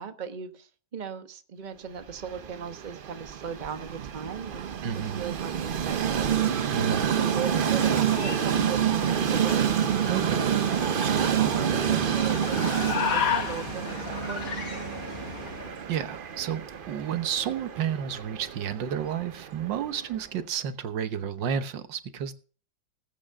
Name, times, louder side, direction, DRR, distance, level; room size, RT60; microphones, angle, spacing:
voice 1, 0.0-6.4 6.9-9.7 10.3-10.5 11.1-14.7, right 7 dB, 30° right, 8 dB, 1.1 m, -38 dB
Train, 2.1-20.2, right 8 dB, 70° right, 0.5 m, -28 dB
voice 2, 4.8-5.2 6.7-7.1 10.1-10.4 15.9-16.6 16.9-22.3, right 9 dB, 90° right, 11 dB, 1.7 m, -31 dB
sound 1, 7.1-15.8, left 7 dB, 55° left, 1.5 m, -34 dB
19.5 x 8.8 x 3.5 m, 0.39 s
omnidirectional pair, 1.9 m